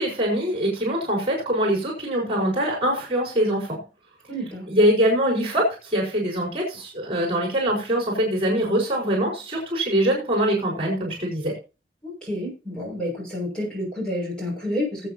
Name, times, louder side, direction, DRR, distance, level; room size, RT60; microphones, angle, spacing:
voice 1, 0.0-3.8 4.7-11.5, right 1 dB, 30° right, -1 dB, 4.5 m, -23 dB
voice 2, 4.3-4.7 12.0-15.1, left 1 dB, 5° left, -2 dB, 5.8 m, -29 dB
19.0 x 8.4 x 2.8 m, 0.30 s
head